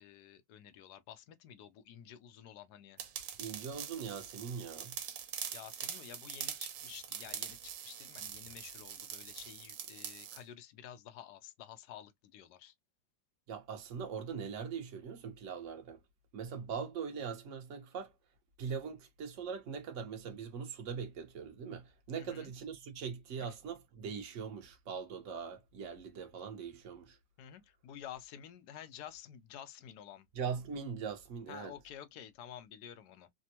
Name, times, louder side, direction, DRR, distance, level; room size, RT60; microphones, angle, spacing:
voice 1, 0.0-3.0 5.5-12.7 22.1-22.5 23.4-23.6 27.4-30.3 31.5-33.3, left 10 dB, 70° left, 1.0 m, -51 dB
sound 1, 3.0-10.4, right 9 dB, 80° right, 1.4 m, -44 dB
voice 2, 3.4-5.0 13.5-16.0 16.3-18.1 18.6-27.2 30.4-31.7, right 6 dB, 50° right, 1.0 m, -41 dB
3.4 x 2.1 x 2.8 m
omnidirectional pair, 2.1 m